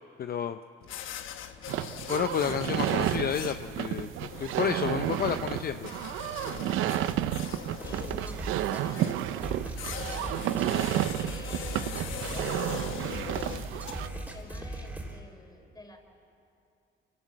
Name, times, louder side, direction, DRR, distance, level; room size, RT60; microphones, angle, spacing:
voice 1, 0.2-0.6 2.1-4.1 4.4-5.9, left 8 dB, 50° left, 9 dB, 0.7 m, -30 dB
sound 1, 0.8-14.6, left 9 dB, 85° left, 1.1 m, -42 dB
sound 2, 1.7-14.1, right 12 dB, 90° right, 0.7 m, -31 dB
voice 2, 7.8-12.0 12.3-16.0, left 1 dB, 20° left, 4 dB, 3.9 m, -49 dB
sound 3, 7.8-15.2, right 2 dB, 10° right, 3.6 m, -39 dB
28.0 x 17.0 x 7.4 m, 2.6 s
cardioid pair, 90°, 20 cm